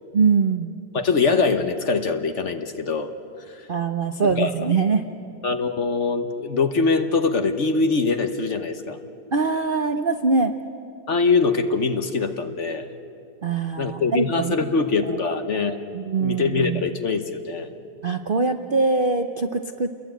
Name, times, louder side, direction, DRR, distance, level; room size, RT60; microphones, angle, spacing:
voice 1, 0.1-0.7 3.7-5.0 9.3-10.5 13.4-14.6 15.0-15.2 15.9-16.8 18.0-19.9, right 4 dB, 45° right, 7 dB, 0.7 m, -23 dB
voice 2, 0.9-3.1 3.5-3.7 4.2-4.7 5.4-9.0 11.1-12.9 13.8-15.8 16.2-17.7, left 4 dB, 45° left, 8 dB, 1.2 m, -23 dB
29.0 x 21.5 x 9.2 m, 2.7 s
omnidirectional pair, 1.9 m